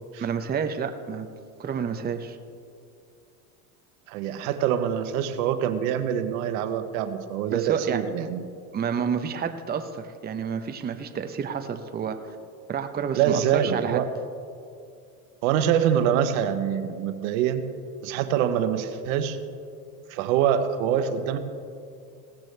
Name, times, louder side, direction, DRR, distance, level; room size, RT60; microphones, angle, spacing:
voice 1, 0.2-1.3 1.6-2.4 7.5-8.0 8.7-12.2 12.7-14.0, right 7 dB, 20° right, 7 dB, 0.8 m, -29 dB
voice 2, 4.1-8.4 13.1-14.1 15.4-17.6 18.0-19.4 20.1-21.4, right 9 dB, 70° right, 9 dB, 1.1 m, -25 dB
17.5 x 13.5 x 3.3 m, 2.5 s
supercardioid pair, 105°, 43 cm